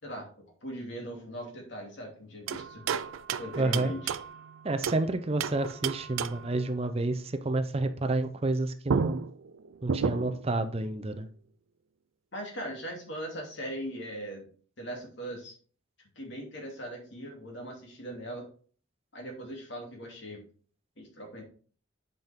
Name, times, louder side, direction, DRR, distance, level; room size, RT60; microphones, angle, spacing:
voice 1, 0.0-2.8 3.4-4.2 12.3-14.5 14.8-15.5 16.2-18.5 19.1-20.4 21.0-21.4, equal, 60° left, 0 dB, 2.7 m, -40 dB
sound 1, 2.5-5.1 5.4-6.6 8.5-8.6 8.9-10.5, right 6 dB, 85° right, 0.4 m, -32 dB
voice 2, 3.6-3.9 4.6-9.2 9.8-11.3, right 2 dB, 30° right, 9 dB, 0.5 m, -29 dB
8.0 x 5.3 x 3.6 m, 0.43 s
head